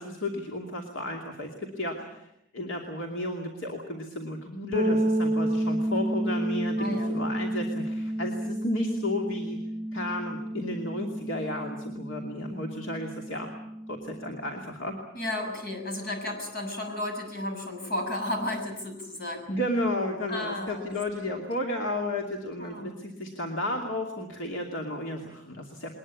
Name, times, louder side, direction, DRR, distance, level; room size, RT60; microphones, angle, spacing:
voice 1, 0.0-9.6 9.9-13.5 13.9-14.9 19.5-25.9, left 1 dB, 65° left, 1 dB, 2.7 m, -33 dB
sound 1, 4.7-14.4, right 1 dB, 25° right, 3.5 m, -31 dB
voice 2, 6.8-7.1 15.1-19.5 20.3-20.8 21.3-21.4 22.6-22.9, left 1 dB, 50° left, 4 dB, 6.8 m, -33 dB
21.5 x 20.5 x 8.6 m, 0.78 s
head